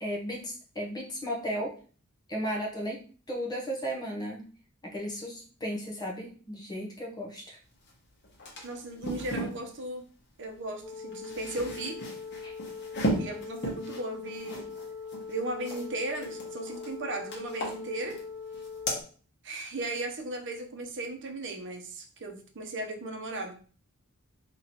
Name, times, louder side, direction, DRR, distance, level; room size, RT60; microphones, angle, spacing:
voice 1, 0.0-1.7 2.3-3.0 3.3-4.5 4.8-7.6 12.4-12.5, equal, 20° left, -1 dB, 0.8 m, -35 dB
sound 1, 7.9-8.0 8.2-9.6 10.9-15.9 16.2-16.9 17.3-18.3 18.5-19.0, right 1 dB, 55° left, 1.2 m, -35 dB
voice 2, 8.6-10.0 10.4-12.0 13.2-14.7 15.3-18.2 19.4-23.6, right 2 dB, 60° right, 4 dB, 0.8 m, -36 dB
sound 2, 10.8-19.0, left 5 dB, 10° right, 0.6 m, -41 dB
3.0 x 3.0 x 4.1 m, 0.41 s
head